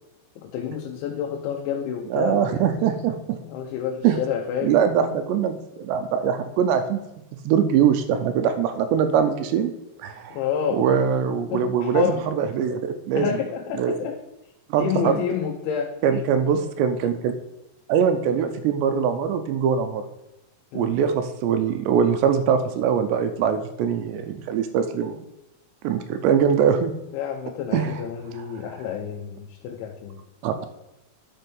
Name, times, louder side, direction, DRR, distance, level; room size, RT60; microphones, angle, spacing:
voice 1, 0.4-2.7 3.4-4.8 10.3-10.8 11.5-12.2 13.1-14.2 14.8-15.9 20.7-21.0 27.1-30.2, left 8 dB, 90° left, 1 dB, 3.3 m, -29 dB
voice 2, 2.1-3.4 4.0-4.2 4.6-7.0 7.5-9.7 10.0-10.4 10.7-13.3 13.8-13.9 14.7-15.2 16.0-17.4 17.9-20.1 20.7-25.2 25.8-26.9 27.7-28.0 28.3-28.7 30.4-30.5, right 7 dB, 80° right, 8 dB, 2.8 m, -22 dB
11.5 x 5.6 x 5.4 m, 0.92 s
omnidirectional pair, 5.2 m